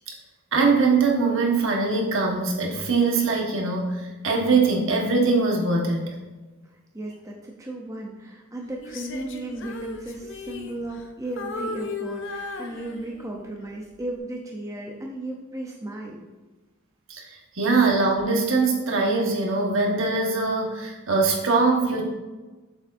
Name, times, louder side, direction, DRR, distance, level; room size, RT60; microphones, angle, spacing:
voice 1, 0.5-6.1 17.1-22.0, right 3 dB, 60° right, 0 dB, 1.3 m, -22 dB
voice 2, 6.9-16.2, right 1 dB, 15° right, -1 dB, 0.6 m, -35 dB
Female singing, 8.8-11.1 11.4-13.4 13.9-14.2, left 3 dB, 55° left, 0.7 m, -36 dB
7.8 x 7.1 x 2.6 m, 1.2 s
head